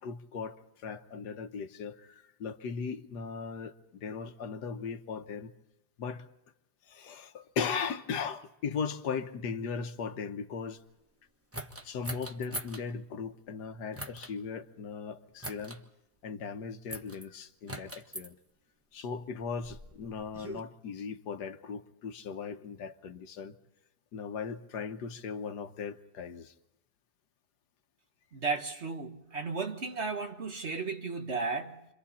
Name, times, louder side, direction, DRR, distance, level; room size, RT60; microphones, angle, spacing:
voice 1, 0.0-5.5 6.0-6.3 6.9-10.8 11.8-15.8 16.2-18.4 18.9-23.5 24.1-26.5, left 6 dB, 90° left, 1.7 m, -38 dB
sound 1, 11.5-12.8 13.9-14.3 15.4-15.8 16.9-17.2 17.7-18.3 19.2-20.6, right 1 dB, 10° right, 1.0 m, -42 dB
voice 2, 28.3-31.9, right 4 dB, 45° right, 1.9 m, -34 dB
29.0 x 26.0 x 4.2 m
omnidirectional pair, 1.7 m